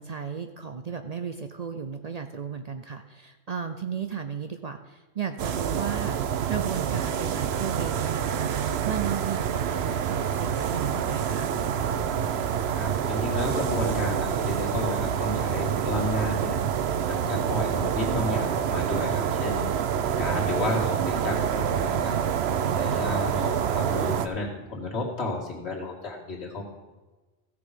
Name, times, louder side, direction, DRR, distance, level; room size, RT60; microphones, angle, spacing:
voice 1, 0.0-6.2 6.5-11.5, right 7 dB, 50° right, 7 dB, 0.5 m, -34 dB
sound 1, 5.4-24.3, right 8 dB, 70° right, 0.9 m, -27 dB
voice 2, 12.7-16.6 17.1-19.6 20.2-22.2 22.8-26.6, left 1 dB, 75° left, -2 dB, 2.5 m, -32 dB
15.5 x 6.9 x 5.1 m, 1.2 s
omnidirectional pair, 1.1 m